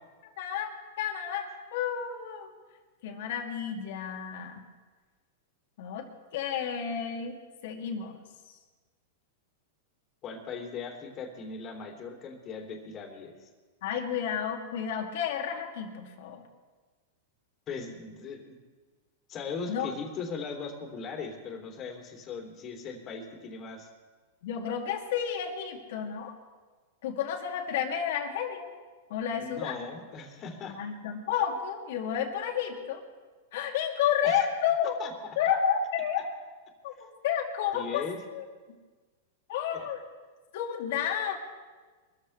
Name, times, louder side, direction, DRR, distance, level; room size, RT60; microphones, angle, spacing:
voice 1, 0.4-2.5 3.0-4.6 5.8-8.2 13.8-16.4 19.7-19.9 24.4-26.4 27.0-28.7 29.1-29.8 30.7-33.0 33.5-35.0 35.4-36.2 36.8-38.0 38.3-38.4 39.5-40.0 40.5-41.4, left 8 dB, 65° left, 2 dB, 2.5 m, -31 dB
voice 2, 10.2-13.5 17.7-18.6 19.3-23.9 29.3-30.8 34.2-34.5 35.0-35.1 37.7-38.2 39.7-39.8, left 5 dB, 30° left, 3 dB, 3.0 m, -39 dB
23.5 x 14.0 x 3.3 m, 1.4 s
hypercardioid pair, 125°, 0 cm